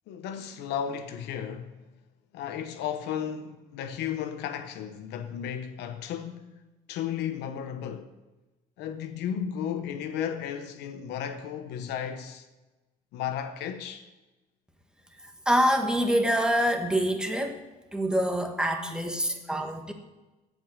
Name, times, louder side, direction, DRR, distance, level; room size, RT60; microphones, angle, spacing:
voice 1, 0.1-1.8 2.3-6.6 6.9-8.1 8.8-12.5 13.1-14.1 18.8-19.5, left 8 dB, 85° left, 1.0 m, -34 dB
voice 2, 15.4-17.6 17.9-19.9, equal, 5° right, 1.5 m, -25 dB
16.0 x 5.4 x 6.3 m
cardioid pair, 110°, 17 cm